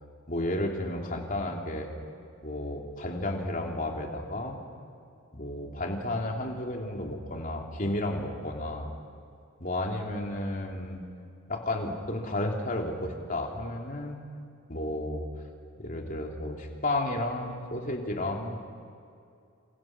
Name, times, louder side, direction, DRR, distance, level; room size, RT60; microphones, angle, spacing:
voice 1, 0.3-1.9 2.4-4.6 5.3-8.9 9.6-11.0 11.5-14.2 14.7-15.3 15.8-18.6, left 1 dB, 40° left, 1 dB, 3.2 m, -32 dB
28.0 x 28.0 x 6.2 m, 2.5 s
head